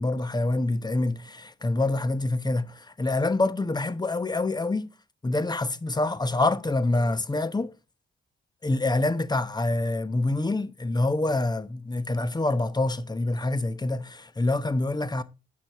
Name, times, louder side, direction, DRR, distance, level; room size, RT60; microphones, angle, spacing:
voice 1, 0.0-4.9 5.2-7.7 8.6-15.2, left 2 dB, 20° left, 0.9 m, -26 dB
9.3 x 6.1 x 4.1 m
cardioid pair, 65°, 20 cm